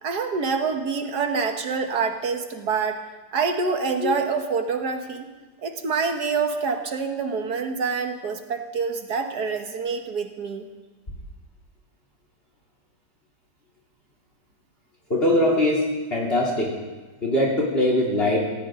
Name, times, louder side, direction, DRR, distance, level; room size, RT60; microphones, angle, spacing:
voice 1, 0.0-3.0 3.3-5.3 5.6-10.7, right 5 dB, 65° right, 5 dB, 1.9 m, -26 dB
voice 2, 15.1-16.8 17.2-18.5, left 1 dB, 30° left, -3 dB, 3.4 m, -22 dB
19.0 x 16.5 x 3.8 m, 1.3 s
omnidirectional pair, 1.9 m